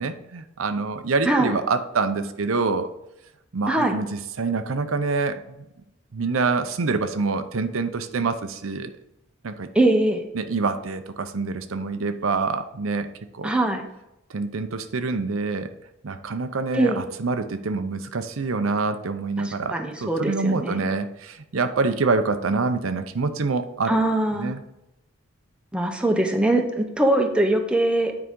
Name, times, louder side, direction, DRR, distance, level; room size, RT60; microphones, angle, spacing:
voice 1, 0.0-2.9 3.5-5.6 6.1-8.9 9.4-9.7 10.3-13.1 13.3-13.5 14.3-15.7 16.0-24.0 24.3-24.6, right 4 dB, 85° right, 9 dB, 0.6 m, -26 dB
voice 2, 3.7-4.0 9.7-10.2 13.4-13.8 16.7-17.0 19.4-21.0 23.9-24.5 25.7-28.1, right 1 dB, 5° right, 3 dB, 0.7 m, -22 dB
9.5 x 4.8 x 3.8 m, 0.88 s
head